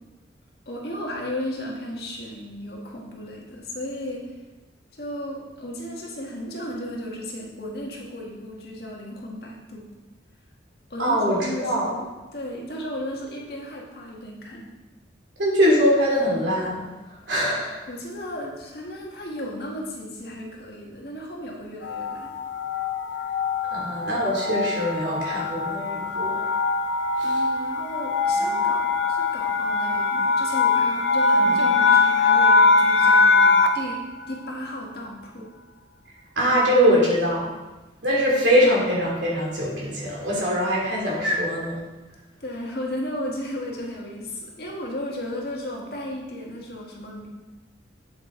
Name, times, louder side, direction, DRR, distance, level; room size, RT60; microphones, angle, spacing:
voice 1, 0.7-4.3 4.9-9.9 10.9-14.7 17.9-22.3 27.2-35.5 42.4-47.3, left 1 dB, 55° left, -2 dB, 1.8 m, -34 dB
voice 2, 11.0-11.9 15.4-16.8 17.3-17.8 23.7-26.4 27.2-27.4 28.4-28.5 36.3-37.5 38.0-41.8, equal, 75° right, -4 dB, 3.0 m, -22 dB
sound 1, 21.8-33.9, left 3 dB, 80° left, 0.7 m, -21 dB
8.8 x 7.1 x 4.0 m, 1.1 s
head